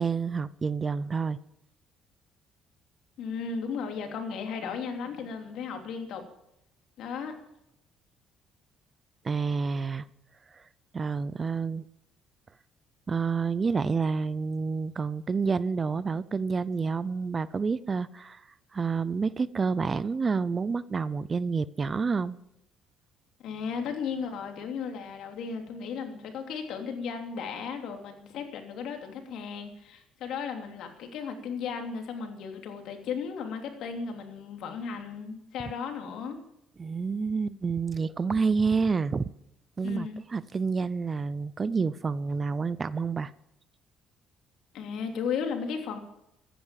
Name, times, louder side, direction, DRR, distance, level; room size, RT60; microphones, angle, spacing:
voice 1, 0.0-1.4 9.2-10.1 10.5-10.6 10.9-11.8 13.1-18.4 18.7-22.4 36.8-39.2 39.8-43.3, right 5 dB, 30° right, 0.6 m, -29 dB
voice 2, 3.2-6.2 7.0-7.3 23.4-36.4 39.8-40.2 44.7-46.0, left 6 dB, 75° left, 3.0 m, -35 dB
14.5 x 10.5 x 7.6 m
cardioid pair, 95°, 0 cm